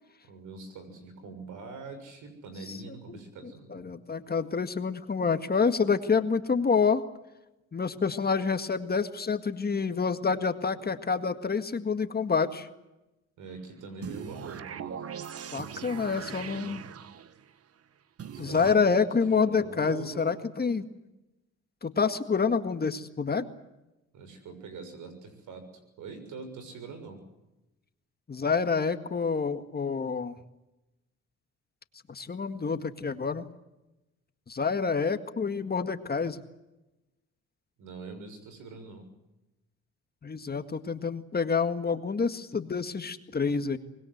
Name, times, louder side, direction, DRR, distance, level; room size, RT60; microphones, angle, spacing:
voice 1, 0.3-3.9 13.4-15.0 15.6-16.9 18.3-20.4 24.1-25.7 26.0-27.2 37.8-39.1, right 4 dB, 80° right, 8 dB, 6.7 m, -44 dB
voice 2, 3.4-7.0 7.7-12.7 15.5-16.8 18.4-20.9 21.8-23.5 28.3-30.4 32.1-33.5 34.5-36.4 40.2-43.8, left 5 dB, 30° left, 8 dB, 1.9 m, -28 dB
sound 1, 14.0-17.5 18.2-18.8, right 8 dB, 50° right, 1.3 m, -40 dB
25.0 x 21.0 x 8.1 m, 0.98 s
cardioid pair, 90°, 30 cm